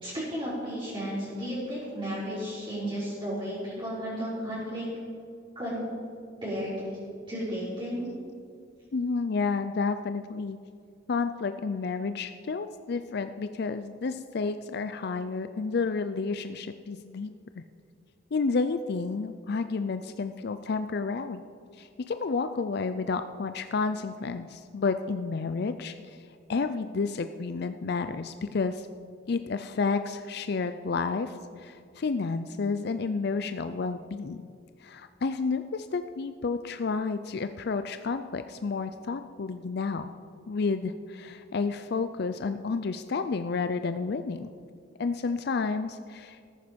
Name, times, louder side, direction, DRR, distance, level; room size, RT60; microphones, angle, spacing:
voice 1, 0.0-4.9 5.5-5.8 6.4-7.0 7.3-8.1, equal, 30° right, -10 dB, 4.4 m, -33 dB
voice 2, 8.9-10.6 11.1-17.6 18.3-21.4 21.8-28.9 29.3-34.4 34.8-40.1 40.5-44.5 45.0-46.5, left 4 dB, 60° left, 10 dB, 0.5 m, -31 dB
14.5 x 13.5 x 5.2 m, 2.3 s
head